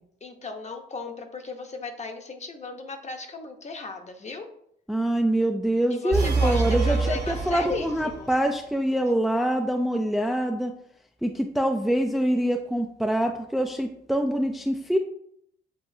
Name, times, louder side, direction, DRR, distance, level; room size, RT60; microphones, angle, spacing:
voice 1, 0.2-4.5 5.9-8.3, left 3 dB, 35° left, 5 dB, 0.8 m, -36 dB
voice 2, 4.9-10.7 11.2-15.0, right 1 dB, ahead, 4 dB, 0.3 m, -25 dB
sound 1, 6.1-8.4, right 4 dB, 55° right, 1.1 m, -26 dB
7.7 x 2.6 x 2.6 m, 0.70 s
cardioid pair, 90°, 20 cm